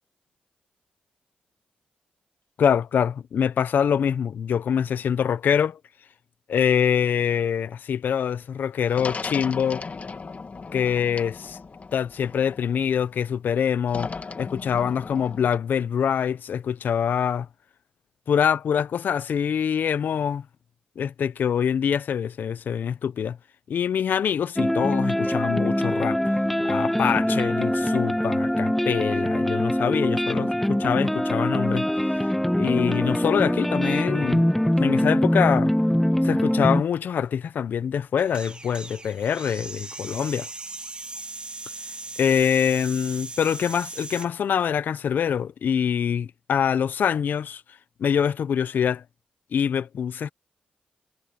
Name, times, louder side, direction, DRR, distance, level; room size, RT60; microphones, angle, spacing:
voice 1, 2.6-5.8 6.5-9.8 10.7-11.6 11.9-14.1 14.4-17.5 18.3-20.4 21.0-23.4 23.7-26.2 26.6-31.9 32.1-32.3 32.6-34.5 34.8-35.7 36.2-40.5 42.2-47.6 48.0-49.0 49.5-50.3, left 8 dB, 75° left, 0.8 m, -24 dB
sound 1, 8.9-13.0 13.9-15.6, left 4 dB, 45° left, 1.9 m, -37 dB
sound 2, 24.6-36.8, equal, 5° left, 0.6 m, -23 dB
sound 3, 38.2-44.3, right 3 dB, 30° right, 2.5 m, -38 dB
supercardioid pair, 50°, 3 cm